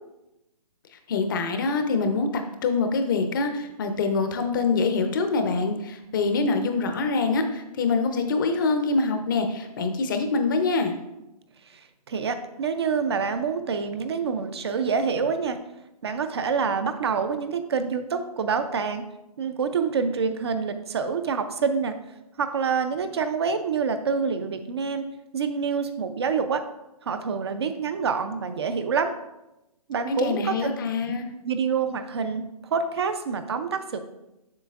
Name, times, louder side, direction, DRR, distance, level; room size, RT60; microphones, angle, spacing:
voice 1, 1.1-11.0 30.1-31.3, left 4 dB, 30° left, 6 dB, 0.6 m, -25 dB
voice 2, 11.7-15.6 16.0-19.0 19.4-22.0 22.4-25.1 25.3-26.6 27.0-29.1 29.9-30.5 31.4-34.0, right 5 dB, 40° right, 9 dB, 0.4 m, -27 dB
7.6 x 6.1 x 2.4 m, 0.94 s
hypercardioid pair, 155°, 20 cm